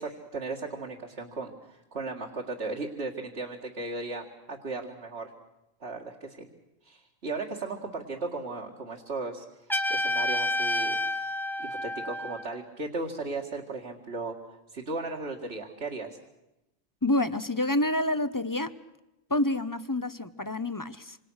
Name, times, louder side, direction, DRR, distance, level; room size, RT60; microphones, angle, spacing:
voice 1, 0.0-5.3 5.8-6.5 6.8-9.5 9.9-11.0 11.6-16.2, right 3 dB, 55° right, -1 dB, 2.4 m, -36 dB
Trumpet, 9.7-12.5, left 1 dB, ahead, 1.7 m, -29 dB
voice 2, 17.0-18.7 19.3-21.2, left 1 dB, 20° left, 13 dB, 0.7 m, -28 dB
27.0 x 27.0 x 6.4 m, 0.93 s
omnidirectional pair, 1.4 m